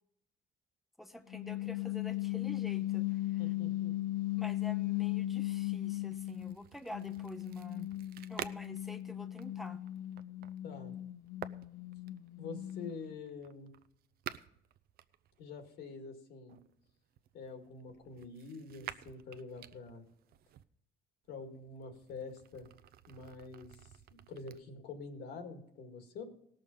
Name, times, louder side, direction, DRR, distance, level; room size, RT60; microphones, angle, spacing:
voice 1, 1.0-3.5 4.4-7.9 8.3-9.8, equal, ahead, 8 dB, 0.6 m, -48 dB
sound 1, 1.3-6.6 6.9-13.2, left 16 dB, 60° left, 0.4 m, -37 dB
voice 2, 3.4-3.9 10.6-10.9 12.4-13.7 15.4-16.6 17.3-20.1 21.3-22.7 23.1-23.7 24.3-26.2, left 4 dB, 75° left, 6 dB, 2.0 m, -46 dB
sound 2, 5.8-15.8 16.5-20.6 21.2-24.6, right 11 dB, 65° right, 0.6 m, -51 dB
17.5 x 6.5 x 5.4 m, 0.74 s
cardioid pair, 110°, 17 cm